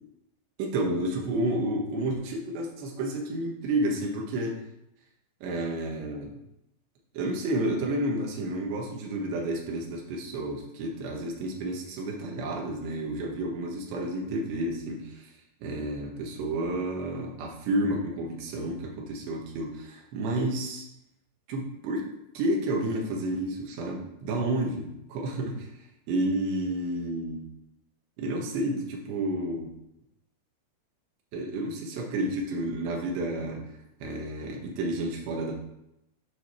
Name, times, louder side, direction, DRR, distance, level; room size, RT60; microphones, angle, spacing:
voice 1, 0.6-4.6 5.4-6.3 7.2-15.3 15.6-20.8 21.5-22.0 22.4-25.7 26.1-27.5 28.2-29.7 31.3-33.7 34.0-35.5, right 1 dB, 75° right, 0 dB, 3.7 m, -30 dB
12.0 x 5.2 x 4.6 m, 0.83 s
omnidirectional pair, 5.1 m